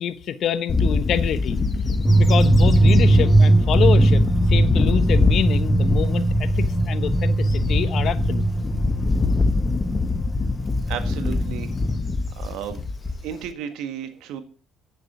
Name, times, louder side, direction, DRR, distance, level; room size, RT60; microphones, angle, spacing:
voice 1, 0.0-1.6 2.2-8.5, left 9 dB, 60° left, 1.0 m, -26 dB
Bird / Wind, 0.7-13.5, left 3 dB, 30° left, 1.3 m, -23 dB
sound 1, 2.0-12.0, right 2 dB, 5° left, 4.2 m, -20 dB
voice 2, 10.9-11.7 12.4-12.8 13.2-14.4, right 9 dB, 75° right, 1.6 m, -33 dB
9.4 x 7.4 x 6.0 m
supercardioid pair, 70°, 0 cm